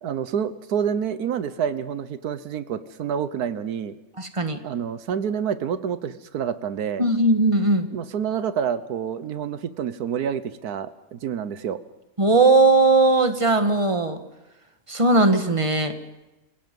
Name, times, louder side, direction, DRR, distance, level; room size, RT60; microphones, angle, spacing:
voice 1, 0.0-4.0 4.6-7.0 7.9-11.8, right 8 dB, 80° right, 13 dB, 1.4 m, -28 dB
voice 2, 4.2-4.6 7.0-7.9 12.2-14.2 14.9-15.9, right 2 dB, 20° right, 7 dB, 1.5 m, -18 dB
28.5 x 17.0 x 5.3 m, 1.0 s
omnidirectional pair, 1.6 m